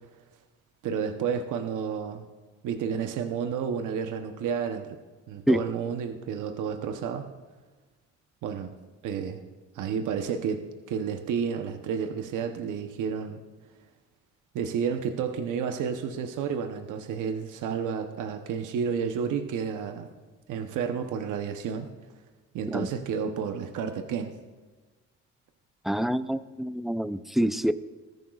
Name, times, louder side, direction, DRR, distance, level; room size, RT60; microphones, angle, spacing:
voice 1, 0.8-2.2 2.6-4.9 5.3-7.3 8.4-8.7 9.0-9.4 9.7-10.6 10.9-13.4 14.5-20.1 20.5-21.9 22.5-24.4, right 7 dB, 85° right, 5 dB, 0.9 m, -31 dB
voice 2, 25.8-27.7, equal, ahead, 13 dB, 0.4 m, -26 dB
20.0 x 14.0 x 2.4 m, 1.3 s
cardioid pair, 90°, 30 cm